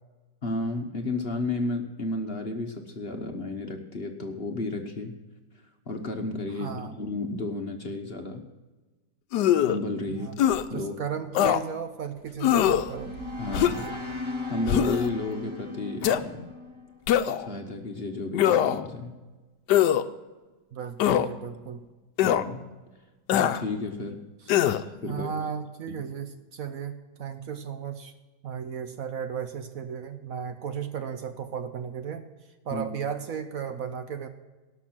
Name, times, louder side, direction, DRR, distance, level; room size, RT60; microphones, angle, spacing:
voice 1, 0.4-5.1 5.9-8.4 9.6-10.3 10.7-10.9 13.4-13.9 14.5-16.5 17.4-19.1 22.2-22.7 23.3-24.2 25.0-25.5 25.9-26.0 32.7-32.9, left 2 dB, 40° left, 4 dB, 1.1 m, -32 dB
voice 2, 6.5-6.9 10.1-10.4 10.7-13.1 20.7-21.8 24.4-28.1 28.4-32.2 32.6-34.3, right 7 dB, 60° right, 8 dB, 1.1 m, -35 dB
sound 1, 9.3-9.8 10.4-10.6 11.3-11.6 12.4-12.9 13.5-13.9 14.7-15.1 16.0-16.2 17.1-17.5 18.3-18.9 19.7-20.0 21.0-21.3 22.2-22.4 23.3-23.6 24.5-24.8, left 11 dB, 80° left, 1.2 m, -22 dB
sound 2, 12.3-17.5, left 3 dB, 15° right, 1.6 m, -37 dB
18.5 x 6.2 x 5.9 m, 1.2 s
omnidirectional pair, 1.9 m